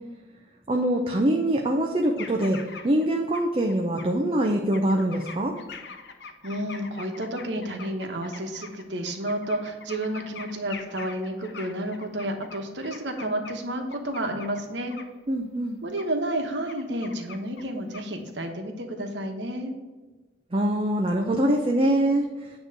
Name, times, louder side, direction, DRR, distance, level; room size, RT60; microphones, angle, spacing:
voice 1, 0.7-2.6 2.8-5.6 15.3-15.8 20.5-22.5, right 1 dB, 30° right, 2 dB, 0.5 m, -24 dB
sound 1, 2.2-3.1 3.3-4.0 4.4-13.6 13.9-14.6 14.9-15.1 16.0-16.1 16.4-17.7 17.9-18.3, left 5 dB, 70° left, 0.7 m, -43 dB
voice 2, 6.4-14.9 15.8-19.7, right 1 dB, 85° right, 4 dB, 1.1 m, -31 dB
8.8 x 3.1 x 6.5 m, 1.3 s
head